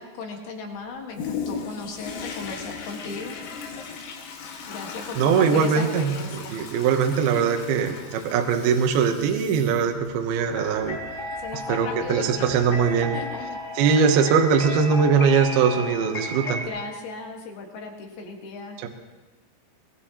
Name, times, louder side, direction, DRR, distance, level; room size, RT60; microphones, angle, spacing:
voice 1, 0.0-3.3 4.7-6.6 11.4-14.0 16.6-18.8, left 4 dB, 60° left, 2 dB, 3.1 m, -37 dB
Toilet flush, 1.1-13.6 14.1-14.2, left 6 dB, 85° left, 4.5 m, -38 dB
voice 2, 5.2-6.2 6.5-11.0 11.7-13.1 13.8-16.6 18.8-18.9, right 6 dB, 75° right, 4 dB, 2.3 m, -21 dB
sound 1, 10.4-16.7, left 1 dB, 15° left, 3.7 m, -35 dB
23.5 x 20.0 x 2.9 m, 1.2 s
omnidirectional pair, 5.8 m